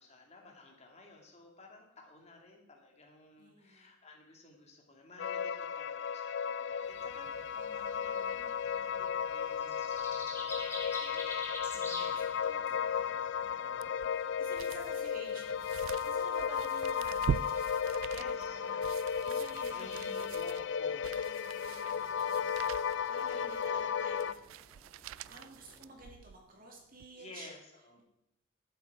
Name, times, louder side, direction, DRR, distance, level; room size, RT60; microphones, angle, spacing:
voice 1, 0.0-13.9 18.1-19.0 19.7-21.1 27.2-28.0, left 2 dB, 35° left, 1 dB, 2.3 m, -55 dB
voice 2, 3.4-3.9 7.5-8.4 11.7-13.1 13.4-17.6 18.3-20.4 20.9-24.8 25.3-27.5, right 1 dB, 45° right, 0 dB, 2.5 m, -53 dB
sound 1, 5.2-24.3, left 7 dB, 65° left, 0.4 m, -35 dB
sound 2, 6.8-26.0, left 2 dB, 15° left, 1.8 m, -50 dB
sound 3, 13.8-26.5 26.9-27.1, right 7 dB, 90° right, 0.3 m, -43 dB
12.0 x 8.2 x 4.8 m, 0.81 s
head